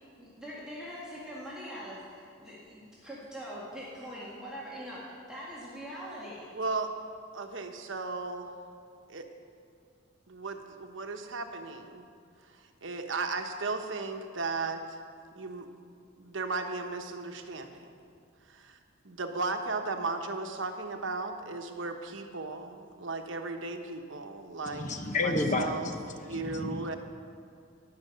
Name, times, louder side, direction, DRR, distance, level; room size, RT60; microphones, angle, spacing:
voice 1, 0.0-6.5, equal, 5° right, -8 dB, 1.9 m, -43 dB
voice 2, 6.5-6.9 7.3-8.5 9.1-9.3 10.3-12.1 12.8-15.0 15.3-15.7 16.2-17.9 18.5-18.8 19.0-24.9 25.2-25.9 26.2-27.0, right 3 dB, 70° right, 5 dB, 1.1 m, -35 dB
voice 3, 24.6-26.9, left 2 dB, 35° left, 6 dB, 0.9 m, -31 dB
18.0 x 6.0 x 7.9 m, 2.4 s
head